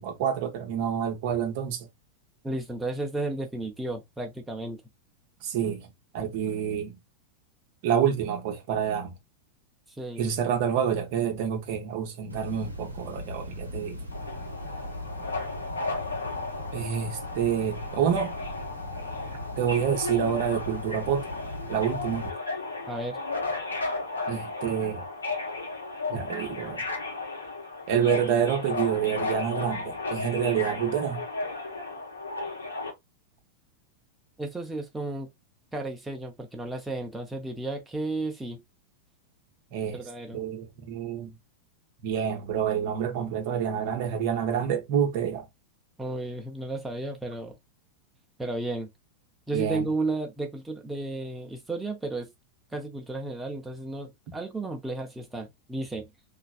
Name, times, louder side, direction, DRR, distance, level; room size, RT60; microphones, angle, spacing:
voice 1, 0.0-1.9 5.4-5.9 6.1-7.0 7.8-9.1 10.2-14.0 16.7-18.3 19.6-21.3 21.7-22.3 24.3-25.0 26.1-26.8 27.9-31.2 39.7-40.0 40.3-41.3 42.0-45.5 49.5-49.9, right 8 dB, 50° right, 0.7 m, -28 dB
voice 2, 2.4-4.8 10.0-10.3 22.9-23.2 34.4-35.3 35.7-38.6 39.9-40.4 46.0-47.6 48.4-48.9 49.5-52.3 52.7-56.1, right 2 dB, 5° right, 0.6 m, -33 dB
sound 1, 12.3-22.3, left 1 dB, 85° right, 0.7 m, -39 dB
Subway metro underground, 14.1-32.9, left 3 dB, 75° left, 0.8 m, -34 dB
3.1 x 2.4 x 2.3 m
figure-of-eight pair, 90°, 0 cm